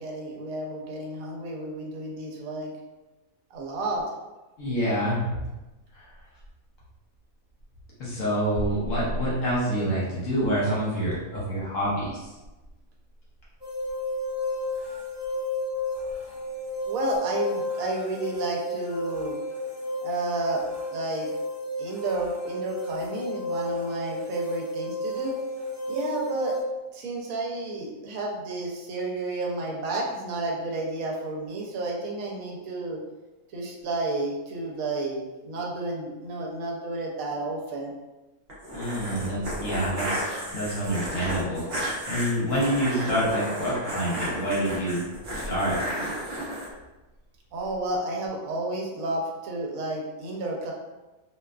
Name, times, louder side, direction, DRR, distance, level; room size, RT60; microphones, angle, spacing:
voice 1, 0.0-2.7 3.5-4.0 16.9-19.3 20.0-20.6 20.9-21.3 21.8-25.4 25.9-26.6 26.9-33.0 33.5-37.9 47.5-50.7, right 2 dB, 75° right, -1 dB, 1.0 m, -31 dB
voice 2, 4.6-5.3 6.0-6.1 8.0-12.3 38.7-40.2 40.5-41.7 42.1-45.1 45.3-45.8, equal, 65° left, -6 dB, 1.1 m, -27 dB
sound 1, 13.6-26.6, left 1 dB, 35° right, 1.4 m, -32 dB
sound 2, 38.5-46.7, equal, 50° right, 0.9 m, -32 dB
2.6 x 2.3 x 2.2 m, 1.1 s
omnidirectional pair, 1.5 m